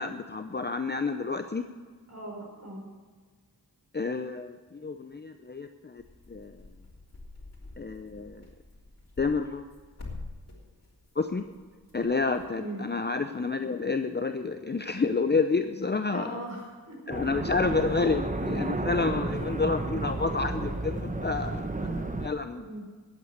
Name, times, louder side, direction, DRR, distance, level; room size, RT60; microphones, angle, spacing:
voice 1, 0.0-1.6 3.9-6.0 6.3-6.6 7.8-8.5 9.2-9.7 11.2-11.4 11.9-16.4 17.1-22.7, left 4 dB, 30° left, 8 dB, 0.6 m, -29 dB
voice 2, 2.1-2.9 12.6-12.8 16.1-17.0 22.5-22.8, right 1 dB, 45° right, -1 dB, 5.1 m, -39 dB
sound 1, 6.0-12.5, left 2 dB, 45° left, 3.2 m, -46 dB
sound 2, 17.1-22.3, right 2 dB, 20° right, 0.9 m, -32 dB
12.5 x 8.8 x 7.9 m, 1.5 s
wide cardioid pair, 80°, 37 cm